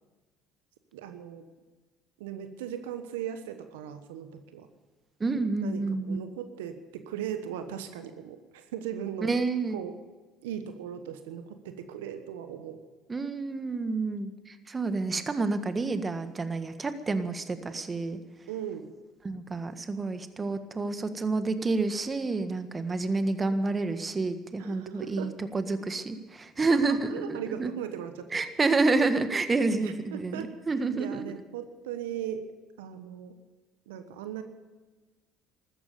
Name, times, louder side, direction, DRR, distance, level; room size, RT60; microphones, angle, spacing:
voice 1, 0.9-1.4 2.2-4.7 5.6-9.3 9.7-10.0 10.4-12.8 18.5-18.9 24.6-25.3 26.9-28.3 29.8-32.4 32.8-33.3 33.9-34.4, right 9 dB, 80° right, 9 dB, 1.1 m, -38 dB
voice 2, 5.2-6.2 9.2-9.8 13.1-18.2 19.2-27.7 28.3-31.2, right 3 dB, 30° right, 9 dB, 1.6 m, -29 dB
14.5 x 13.5 x 7.0 m, 1.3 s
hypercardioid pair, 60°, 0 cm